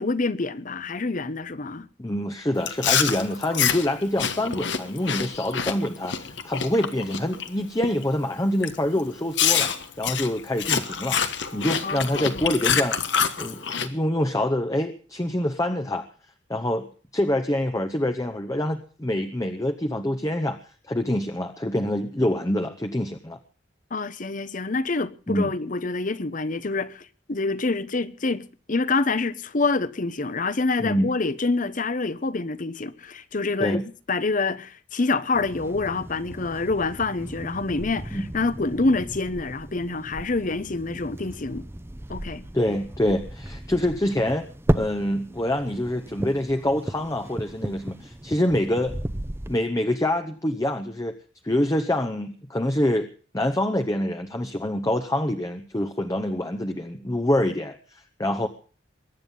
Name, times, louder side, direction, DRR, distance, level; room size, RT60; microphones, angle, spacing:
voice 1, 0.0-1.9 11.8-12.6 23.9-33.8 34.1-41.6 42.1-42.5, left 3 dB, 45° left, 0.9 m, -27 dB
voice 2, 2.0-9.7 10.0-11.2 11.5-13.1 13.4-16.1 16.5-16.8 17.1-20.6 20.9-23.4 25.3-25.5 30.8-31.1 33.6-33.8 38.1-38.2 42.5-44.5 44.7-48.9 49.5-51.1 51.4-53.1 53.3-58.5, left 1 dB, 20° left, 0.9 m, -26 dB
Chewing mastication, 2.6-7.5 7.8-8.2 8.6-8.8 9.4-13.9, left 7 dB, 70° left, 1.4 m, -26 dB
sound 1, 35.3-49.6, right 1 dB, 15° right, 0.7 m, -34 dB
22.5 x 9.8 x 5.5 m
head